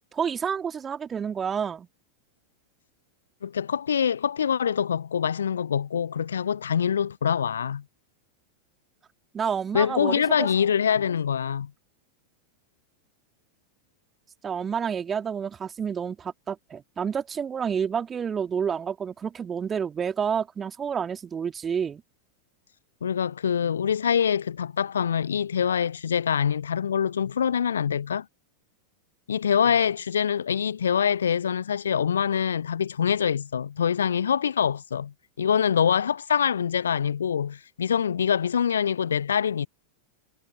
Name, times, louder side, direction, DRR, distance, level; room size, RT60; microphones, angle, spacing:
voice 1, 0.1-1.9 9.3-10.5 14.4-22.0, right 7 dB, 20° right, 3.0 m, -29 dB
voice 2, 3.4-7.8 9.7-11.7 23.0-28.2 29.3-39.7, left 8 dB, 70° left, 0.6 m, -25 dB
figure-of-eight pair, 90°, 0 cm